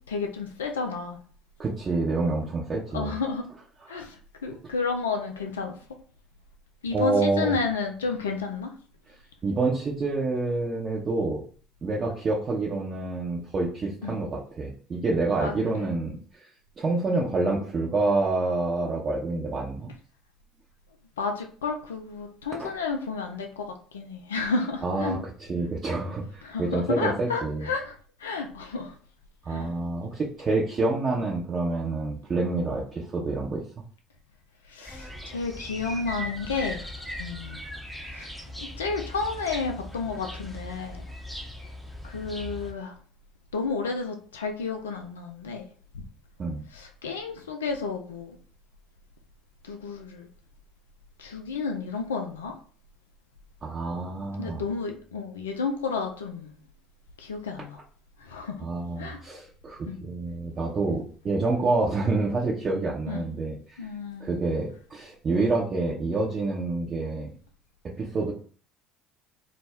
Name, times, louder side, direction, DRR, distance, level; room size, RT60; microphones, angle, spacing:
voice 1, 0.1-1.2 2.9-3.4 3.9-5.7 6.8-8.7 14.0-14.2 15.4-15.9 21.2-23.7 23.9-25.2 26.4-29.0 29.5-29.7 34.6-36.8 37.2-37.6 38.1-38.3 38.6-41.0 42.0-42.9 43.5-45.7 46.7-48.4 49.6-50.3 51.2-52.5 54.4-56.5 57.2-57.8 58.2-58.6 59.0-59.2 59.9-60.0 63.1-63.3 63.8-64.4, left 4 dB, 85° left, 0.3 m, -31 dB
voice 2, 1.6-3.2 3.9-4.0 6.9-7.6 9.4-11.4 11.8-16.5 16.8-19.9 22.6-22.7 24.8-27.7 29.4-33.6 46.4-46.6 53.6-54.6 58.6-63.8 64.2-67.3 67.8-68.3, right 3 dB, 35° right, 0.6 m, -27 dB
sound 1, 34.9-42.7, equal, ahead, 0.6 m, -39 dB
2.3 x 2.0 x 3.4 m
hypercardioid pair, 65°, 0 cm